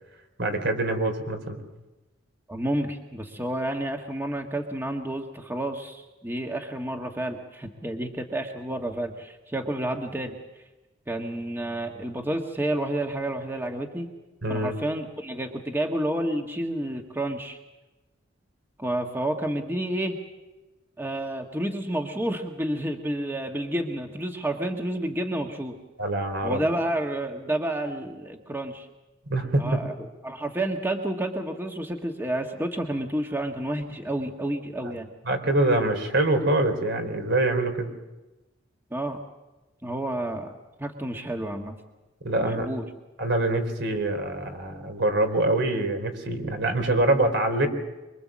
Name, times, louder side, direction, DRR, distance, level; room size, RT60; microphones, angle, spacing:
voice 1, 0.4-1.6 14.4-14.7 26.0-26.6 29.3-29.8 35.3-37.9 42.2-42.7 43.2-47.7, right 2 dB, 65° right, 7 dB, 3.8 m, -24 dB
voice 2, 2.5-10.4 11.1-14.1 14.5-17.6 18.8-20.2 21.0-25.8 26.4-28.9 29.6-35.1 38.9-39.2 39.8-40.5 40.8-41.8 42.4-42.8, right 1 dB, 10° right, 3 dB, 1.5 m, -30 dB
24.5 x 23.5 x 7.4 m, 1.1 s
head